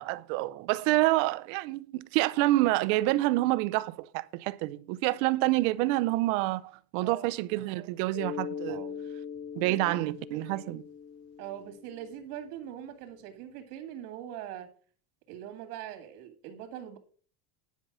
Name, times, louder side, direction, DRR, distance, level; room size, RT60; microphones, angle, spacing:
voice 1, 0.0-8.8 9.6-10.8, right 18 dB, 60° right, 0.6 m, -27 dB
Mallet percussion, 8.1-12.6, left 7 dB, 35° left, 1.0 m, -41 dB
voice 2, 8.7-9.1 9.6-10.0 11.4-14.7 15.3-17.0, right 11 dB, 80° right, 2.3 m, -42 dB
10.5 x 5.6 x 6.0 m
cardioid pair, 175°, 44 cm